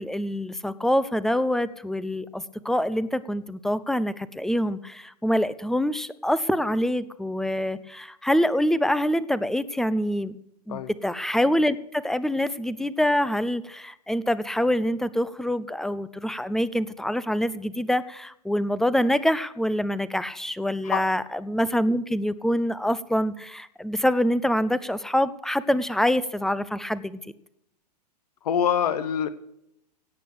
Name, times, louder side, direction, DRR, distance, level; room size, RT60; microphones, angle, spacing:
voice 1, 0.0-10.4 10.7-27.3, equal, ahead, 16 dB, 0.6 m, -25 dB
voice 2, 28.4-29.3, left 8 dB, 70° left, 14 dB, 0.9 m, -24 dB
17.5 x 8.4 x 6.7 m, 0.79 s
hypercardioid pair, 105°, 21 cm